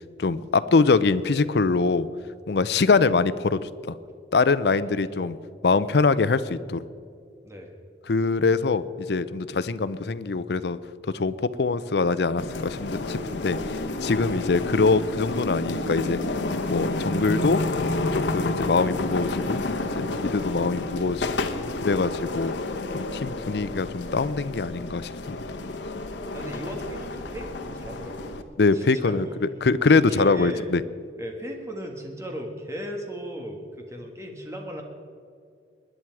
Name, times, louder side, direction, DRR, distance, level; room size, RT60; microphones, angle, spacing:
voice 1, 0.2-2.1 2.5-3.9 4.3-5.4 5.6-6.8 8.1-10.8 11.1-13.6 14.0-16.2 16.7-17.6 18.1-19.6 20.0-21.3 21.8-22.5 22.9-25.4 28.6-30.8, left 4 dB, 70° left, 16 dB, 0.5 m, -23 dB
voice 2, 4.8-5.3 7.4-7.7 14.3-14.4 20.5-20.6 23.2-23.3 26.3-28.4 28.7-29.4 30.0-30.7 31.2-34.8, equal, 15° right, 2 dB, 1.7 m, -37 dB
sound 1, 12.4-28.4, left 2 dB, 85° left, 1.0 m, -30 dB
20.5 x 10.0 x 4.7 m, 2.4 s
head